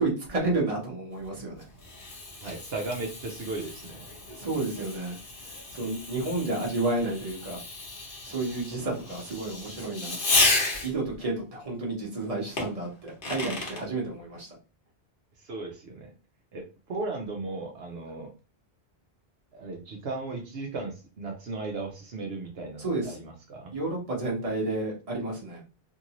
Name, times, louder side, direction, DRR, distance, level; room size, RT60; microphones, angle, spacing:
voice 1, 0.0-1.7 4.3-5.2 5.7-7.6 8.2-10.4 10.8-14.5 22.8-23.2 23.7-25.6, right 2 dB, 35° right, -2 dB, 1.0 m, -31 dB
Fireworks, 1.2-11.1 12.6-13.8, left 3 dB, 55° left, 1.0 m, -32 dB
voice 2, 2.4-4.1 15.4-16.1 16.5-18.3 19.5-23.7, right 3 dB, 70° right, 0 dB, 0.9 m, -36 dB
2.7 x 2.6 x 2.9 m, 0.34 s
omnidirectional pair, 1.1 m